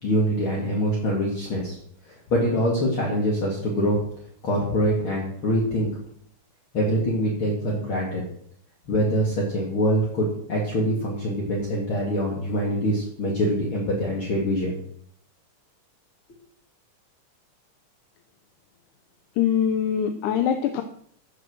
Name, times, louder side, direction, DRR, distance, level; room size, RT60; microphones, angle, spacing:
voice 1, 0.0-1.8 2.1-4.0 4.4-5.9 6.7-8.2 8.9-14.8, equal, 45° left, -3 dB, 2.8 m, -24 dB
voice 2, 19.4-20.8, left 8 dB, 75° left, 7 dB, 2.3 m, -23 dB
14.5 x 6.7 x 6.3 m, 0.64 s
omnidirectional pair, 3.7 m